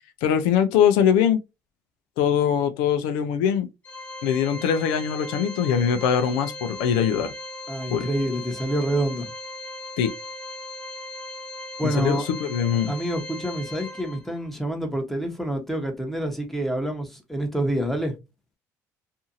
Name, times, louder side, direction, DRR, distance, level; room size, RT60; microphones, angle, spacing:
voice 1, 0.2-1.4 2.2-3.7 4.2-7.3 7.9-8.1 10.0-10.1 11.8-12.9, left 8 dB, 80° left, 0.4 m, -22 dB
Organ, 3.8-14.5, left 2 dB, 20° left, 1.3 m, -38 dB
voice 2, 7.7-9.3 11.8-12.3 12.9-18.1, right 1 dB, 5° left, 0.9 m, -27 dB
2.7 x 2.4 x 2.5 m
supercardioid pair, 75°, 8 cm